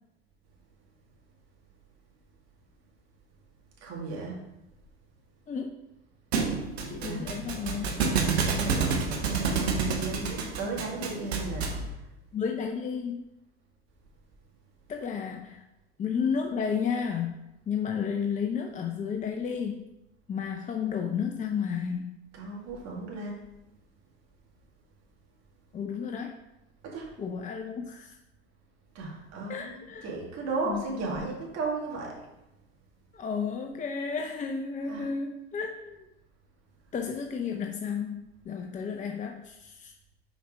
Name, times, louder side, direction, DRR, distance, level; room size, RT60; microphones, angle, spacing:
voice 1, 3.8-4.4 7.0-7.3 8.1-11.7 22.3-23.4 26.8-27.1 28.9-32.1 34.9-35.1, right 3 dB, 55° right, -2 dB, 2.1 m, -35 dB
voice 2, 5.5-5.8 6.9-7.9 12.3-13.2 14.9-15.6 16.0-17.4 17.7-19.9 20.3-22.2 25.7-26.4 27.2-28.2 29.5-30.1 30.6-30.8 33.1-36.0 36.9-39.9, left 6 dB, 25° left, 3 dB, 0.6 m, -32 dB
Thump thud, 6.3-11.9, right 5 dB, 80° right, 1.0 m, -29 dB
6.0 x 4.2 x 5.0 m, 0.91 s
hypercardioid pair, 70°, 32 cm